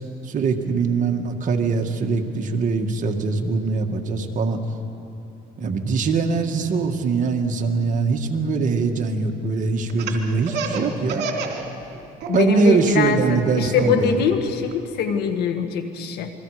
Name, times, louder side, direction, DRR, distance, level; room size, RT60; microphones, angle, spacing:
voice 1, 0.2-4.6 5.6-11.3 12.3-14.1, right 4 dB, 50° right, 3 dB, 1.9 m, -22 dB
Laughter, 9.9-11.6 11.9-12.6 13.0-14.7, right 5 dB, 75° right, 2.9 m, -29 dB
voice 2, 12.3-16.3, left 6 dB, 75° left, 7 dB, 1.8 m, -23 dB
28.0 x 22.5 x 5.0 m, 2.9 s
cardioid pair, 110°, 17 cm